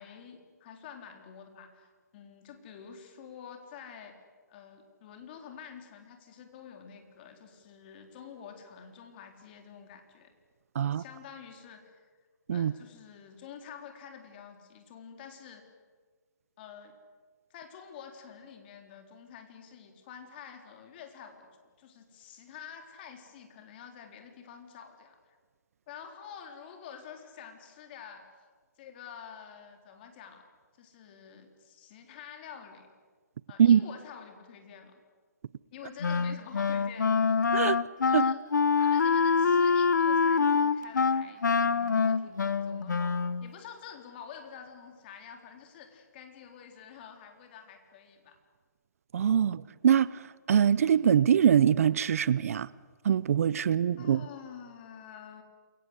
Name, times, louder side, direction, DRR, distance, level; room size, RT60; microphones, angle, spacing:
voice 1, 0.0-4.2 4.5-10.3 10.8-12.1 12.5-15.7 16.6-16.9 17.5-21.5 21.8-25.4 25.9-28.3 28.8-30.5 30.8-32.9 33.5-35.0 35.7-37.2 38.1-38.4 38.7-48.4 53.6-55.4, left 7 dB, 35° left, 4 dB, 4.0 m, -48 dB
Wind instrument woodwind instrument, 36.0-43.5, left 5 dB, 85° left, 1.1 m, -25 dB
voice 2, 49.1-52.7 53.0-54.2, right 8 dB, 50° right, 20 dB, 0.7 m, -23 dB
28.5 x 22.0 x 8.2 m, 1.5 s
hypercardioid pair, 155°, 10 cm